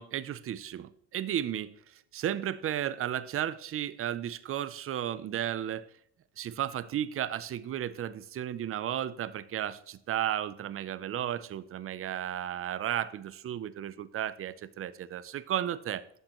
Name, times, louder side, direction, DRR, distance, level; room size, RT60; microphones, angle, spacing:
voice 1, 0.0-5.9 6.4-16.0, right 11 dB, 30° right, 16 dB, 0.5 m, -34 dB
11.5 x 6.7 x 3.0 m, 0.68 s
supercardioid pair, 115°, 47 cm